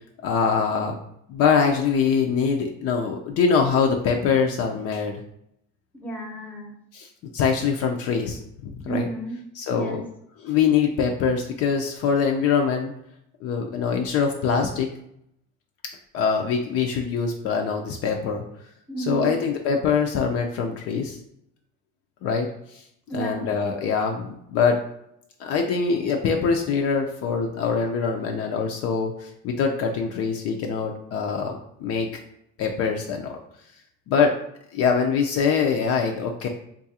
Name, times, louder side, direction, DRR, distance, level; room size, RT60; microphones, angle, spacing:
voice 1, 0.2-1.0 1.3-5.2 6.9-9.1 9.5-10.0 10.4-12.9 13.4-14.9 16.1-18.4 19.0-21.2 22.2-22.8 23.1-24.8 25.4-32.1 32.6-33.4 34.1-34.3 34.7-36.5, left 6 dB, 50° left, 2 dB, 0.4 m, -23 dB
voice 2, 6.0-6.7 8.8-9.4 9.7-10.0 18.9-19.3 23.1-23.5, right 3 dB, 5° left, 0 dB, 0.7 m, -32 dB
3.8 x 2.4 x 2.7 m, 0.76 s
cardioid pair, 130°, 31 cm